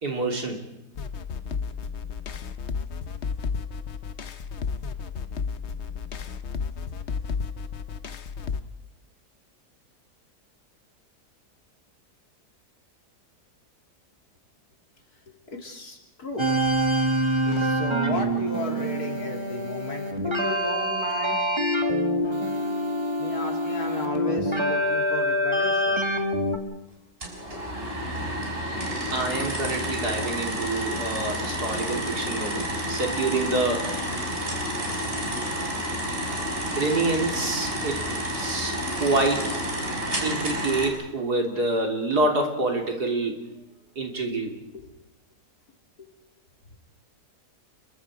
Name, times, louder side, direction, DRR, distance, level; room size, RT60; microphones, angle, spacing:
voice 1, 0.0-0.6 29.1-33.9 36.8-38.1 38.4-38.8 39.0-39.6 40.2-43.5 44.0-44.6, right 2 dB, 70° right, 2 dB, 3.7 m, -27 dB
sound 1, 0.9-8.6, left 5 dB, 50° left, 1.1 m, -32 dB
voice 2, 15.3-16.8 17.5-21.4 23.2-26.0 44.7-44.9 46.0-46.1, left 2 dB, 65° left, 1 dB, 3.9 m, -35 dB
sound 2, 16.4-26.6, equal, 15° right, 2.1 m, -25 dB
sound 3, 27.2-40.9, equal, 35° right, 5.5 m, -30 dB
29.5 x 22.5 x 4.9 m, 0.86 s
omnidirectional pair, 1.7 m